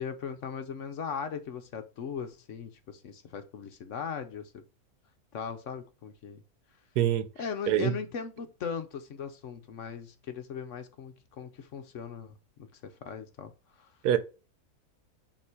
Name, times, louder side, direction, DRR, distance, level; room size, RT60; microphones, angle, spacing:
voice 1, 0.0-4.6 5.3-6.4 7.4-12.4 12.7-13.9, left 6 dB, 60° left, 0.9 m, -38 dB
voice 2, 7.0-7.3 7.7-7.9 14.0-14.2, right 11 dB, 85° right, 1.2 m, -24 dB
7.0 x 3.1 x 4.8 m
omnidirectional pair, 1.6 m